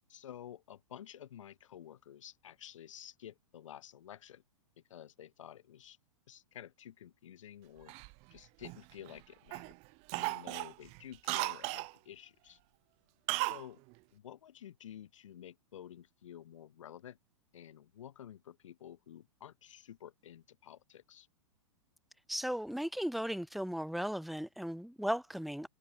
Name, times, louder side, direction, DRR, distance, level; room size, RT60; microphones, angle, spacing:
voice 1, 0.1-4.4 4.9-6.0 6.3-9.8 10.1-12.6 13.4-13.8 14.1-17.2 17.5-21.3, left 10 dB, 65° left, 4.3 m, -51 dB
Cough, 7.9-9.1 9.5-9.7 10.1-11.9 13.3-13.6 13.9-14.0, right 29 dB, 40° right, 0.9 m, -36 dB
voice 2, 22.3-25.7, equal, ahead, 0.6 m, -36 dB
hypercardioid pair, 110°, 17 cm